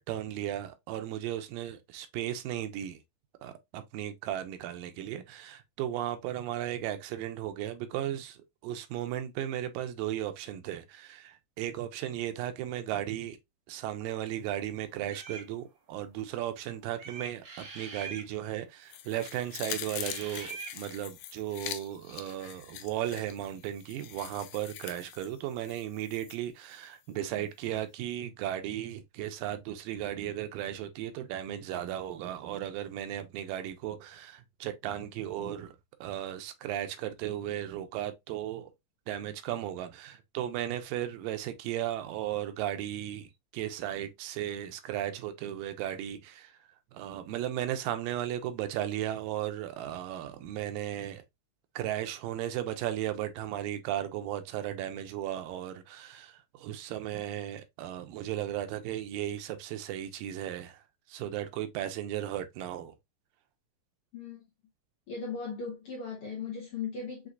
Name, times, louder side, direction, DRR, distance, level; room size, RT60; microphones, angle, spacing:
voice 1, 0.0-3.0 3.4-13.4 13.7-38.7 39.1-46.6 46.9-51.2 51.8-60.8 61.1-63.0, right 12 dB, 90° right, 2.3 m, -35 dB
sound 1, 15.1-15.5 17.0-18.3 19.9-20.8, right 4 dB, 55° right, 2.4 m, -43 dB
sound 2, 18.9-26.4 26.7-26.8, left 12 dB, 90° left, 2.3 m, -43 dB
voice 2, 65.1-67.3, left 5 dB, 65° left, 1.4 m, -37 dB
6.2 x 2.9 x 2.3 m
omnidirectional pair, 3.9 m